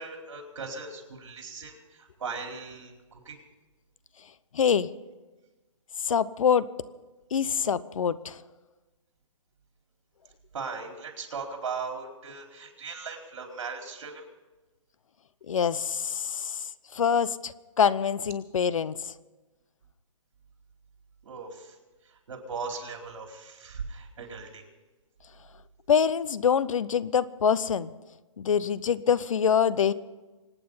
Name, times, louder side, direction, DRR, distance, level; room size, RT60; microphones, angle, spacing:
voice 1, 0.0-3.4 10.5-14.2 21.2-21.7 22.3-24.6, right 4 dB, 65° right, 2 dB, 4.4 m, -38 dB
voice 2, 4.5-4.9 6.0-6.6 7.3-8.4 15.5-19.0 25.9-27.9 28.4-29.9, left 7 dB, 75° left, 18 dB, 0.8 m, -25 dB
25.5 x 9.3 x 5.6 m, 1.2 s
hypercardioid pair, 170°, 17 cm